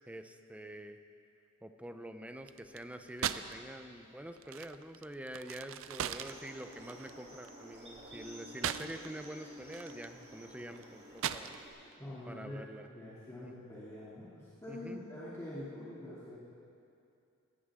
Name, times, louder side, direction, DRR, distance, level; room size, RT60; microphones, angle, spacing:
voice 1, 0.1-1.0 1.6-11.6 12.3-12.9 13.4-13.5 14.7-15.0, right 1 dB, 5° right, 7 dB, 0.7 m, -46 dB
sound 1, 2.4-3.6 3.9-9.3 9.6-11.9, right 9 dB, 65° right, 0.5 m, -40 dB
sound 2, 6.1-11.7, right 1 dB, 30° right, 3.7 m, -52 dB
voice 2, 12.0-16.4, left 1 dB, 15° left, -10 dB, 2.7 m, -45 dB
19.0 x 18.0 x 3.7 m, 2.6 s
head